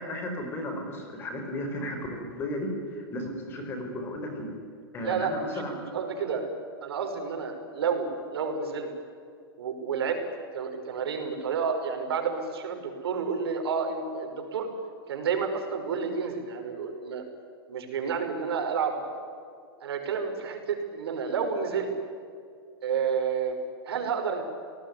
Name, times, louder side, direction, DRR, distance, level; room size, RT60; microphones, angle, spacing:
voice 1, 0.0-4.5 4.9-5.9, left 1 dB, 15° left, 4 dB, 4.7 m, -34 dB
voice 2, 5.0-5.5 5.9-6.4 6.8-8.9 9.6-10.2 10.5-14.7 15.1-17.2 17.7-18.9 19.8-21.9 22.8-23.6 23.9-24.4, right 6 dB, 80° right, 5 dB, 5.7 m, -30 dB
28.0 x 19.0 x 9.6 m, 2.4 s
supercardioid pair, 170°, 13 cm